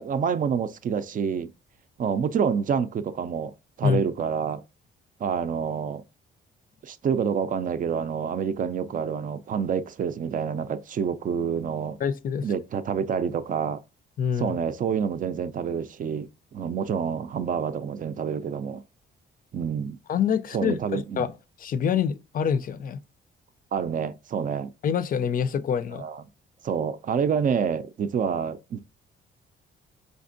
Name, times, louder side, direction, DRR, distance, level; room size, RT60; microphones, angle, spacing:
voice 1, 0.0-1.5 2.0-3.5 3.8-4.6 5.2-6.0 6.8-12.0 12.4-13.8 14.4-18.8 19.5-20.0 20.5-21.3 23.7-24.7 26.0-26.2 26.6-28.8, right 7 dB, 45° right, 0.4 m, -27 dB
voice 2, 12.0-12.5 14.2-14.6 20.1-21.3 21.6-23.0 24.8-26.1, left 7 dB, 45° left, 0.5 m, -26 dB
5.1 x 3.4 x 2.5 m
cardioid pair, 90°, 20 cm